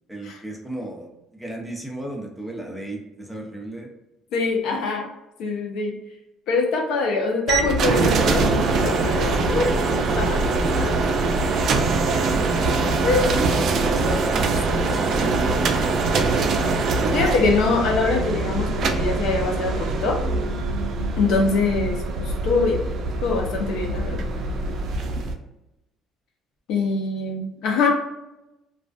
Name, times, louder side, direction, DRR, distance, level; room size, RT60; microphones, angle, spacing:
voice 1, 0.1-3.9 13.3-15.8 21.3-21.7, right 1 dB, ahead, 0 dB, 0.6 m, -34 dB
voice 2, 4.3-5.1 5.4-5.9 6.5-9.7 10.0-10.4 10.7-11.0 13.0-13.3 17.1-20.2 21.2-22.8 23.2-24.2 26.7-27.9, left 4 dB, 70° left, 1 dB, 0.5 m, -23 dB
sound 1, 7.5-25.3, right 3 dB, 55° right, 0.3 m, -23 dB
2.3 x 2.3 x 2.4 m, 0.92 s
supercardioid pair, 80°, 0 cm